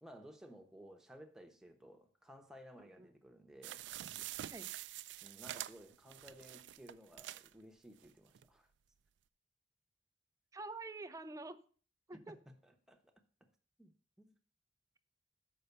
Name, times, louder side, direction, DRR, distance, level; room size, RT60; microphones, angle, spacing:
voice 1, 0.0-3.8 5.2-8.7 12.1-13.1 13.4-13.5 13.8-14.3, equal, 5° right, 0.9 m, -57 dB
voice 2, 2.8-3.1 4.4-4.7 10.5-11.6 12.1-12.4, right 2 dB, 20° right, 0.4 m, -47 dB
sound 1, 3.6-7.5 8.0-8.1 8.3-8.4, right 13 dB, 80° right, 0.3 m, -46 dB
6.7 x 5.4 x 6.8 m
head